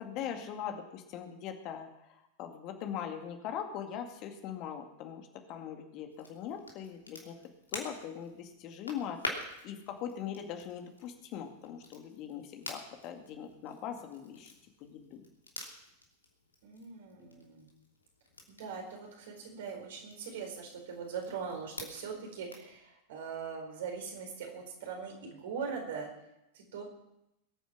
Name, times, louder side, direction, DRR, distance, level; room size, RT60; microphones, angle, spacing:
voice 1, 0.0-7.4 7.7-14.5 14.8-15.3, left 8 dB, 40° left, 5 dB, 2.1 m, -41 dB
Crackle, 6.1-22.7, left 2 dB, 80° left, 2.9 m, -48 dB
voice 2, 16.6-17.7 18.5-26.1 26.5-26.8, right 6 dB, 55° right, 2 dB, 4.3 m, -41 dB
21.0 x 9.2 x 6.2 m, 0.86 s
figure-of-eight pair, 90°, 0 cm